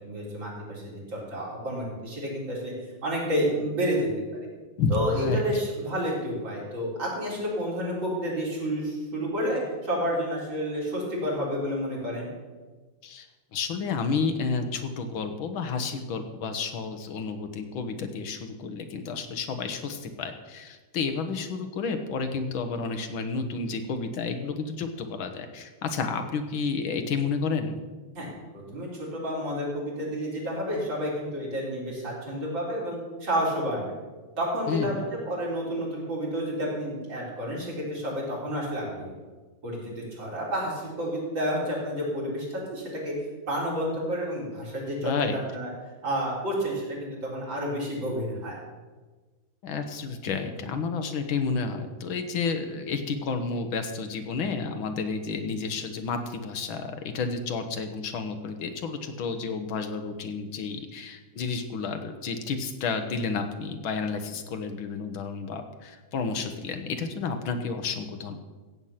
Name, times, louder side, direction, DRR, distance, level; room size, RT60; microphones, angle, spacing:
voice 1, 0.0-2.7 3.0-4.1 4.9-12.3 28.1-28.3 28.5-33.9 34.4-39.1 39.6-43.1 43.5-45.7 46.0-48.6, equal, 75° right, -5 dB, 4.8 m, -30 dB
voice 2, 4.8-5.4 13.0-13.3 13.5-27.7 34.7-34.9 45.0-45.4 49.6-68.3, left 4 dB, 85° left, 7 dB, 1.9 m, -31 dB
15.0 x 8.2 x 5.8 m, 1.3 s
omnidirectional pair, 2.1 m